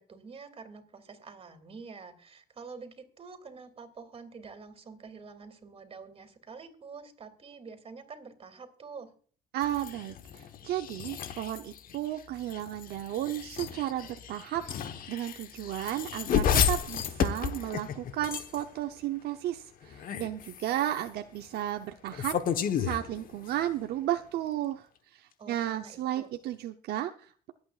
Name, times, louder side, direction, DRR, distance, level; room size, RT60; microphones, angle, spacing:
voice 1, 0.0-9.1 25.4-26.3, right 5 dB, 35° right, 7 dB, 2.8 m, -47 dB
voice 2, 9.5-22.4 22.8-24.8 25.1-27.5, right 12 dB, 70° right, 6 dB, 0.9 m, -34 dB
sound 1, 9.6-18.8 19.8-21.1 22.1-23.7, left 8 dB, 55° left, 1.3 m, -32 dB
24.0 x 8.6 x 2.5 m, 0.43 s
cardioid pair, 110°, 17 cm